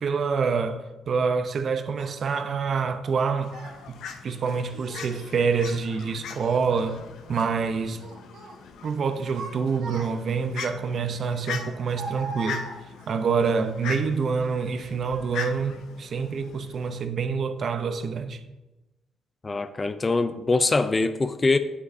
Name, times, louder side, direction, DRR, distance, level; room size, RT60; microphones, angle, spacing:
voice 1, 0.0-3.5 3.9-7.0 7.3-8.0 8.8-12.7 13.1-18.4, right 5 dB, 55° right, 0.7 m, -26 dB
Child speech kid speaking, 2.0-2.1 3.0-3.8 4.7-5.3 5.7-7.0 7.3-7.6 8.0-8.6 9.1-10.4 11.4-13.2, right 3 dB, 85° right, 1.6 m, -40 dB
Fowl, 3.4-17.0, left 6 dB, 80° left, 0.7 m, -40 dB
voice 2, 19.4-21.6, left 3 dB, 25° left, 0.4 m, -23 dB
8.2 x 7.5 x 2.7 m
cardioid pair, 90°, 0 cm